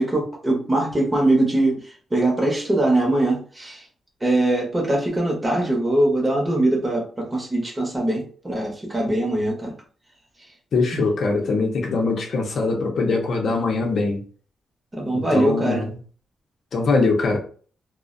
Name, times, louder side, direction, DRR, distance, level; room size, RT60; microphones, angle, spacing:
voice 1, 0.0-3.9 4.2-9.7 10.9-11.1 14.9-15.9, right 1 dB, 15° right, -1 dB, 0.8 m, -22 dB
voice 2, 10.7-14.2 15.1-16.0 16.7-17.4, left 3 dB, 55° left, 1 dB, 0.6 m, -22 dB
2.4 x 2.1 x 2.4 m, 0.42 s
cardioid pair, 135°, 0 cm